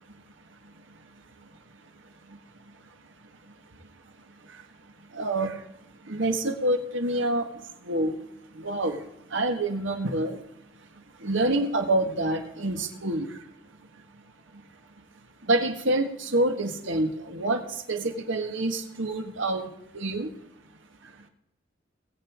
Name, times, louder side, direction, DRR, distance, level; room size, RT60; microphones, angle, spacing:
voice 1, 5.2-5.5 6.1-7.5 7.9-8.1 8.6-9.0 9.3-10.4 11.2-13.3 15.5-17.6 17.9-19.7 19.9-20.3, right 1 dB, 90° right, 4 dB, 1.8 m, -26 dB
20.5 x 8.3 x 3.7 m, 0.82 s
head